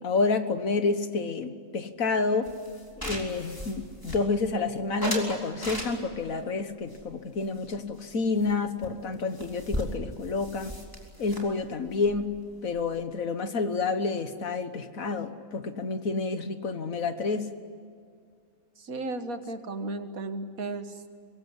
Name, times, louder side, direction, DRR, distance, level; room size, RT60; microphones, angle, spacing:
voice 1, 0.0-2.5 3.0-10.7 11.2-12.3 12.6-17.5, left 4 dB, 75° left, 9 dB, 1.8 m, -29 dB
sound 1, 2.5-4.6 5.0-6.3 6.9-8.1 8.4-8.5 8.8-8.9 9.1-13.0, right 1 dB, 15° left, 3.8 m, -37 dB
voice 2, 18.8-21.1, right 2 dB, 80° right, 8 dB, 2.0 m, -35 dB
24.5 x 22.0 x 9.7 m, 2.2 s
omnidirectional pair, 1.4 m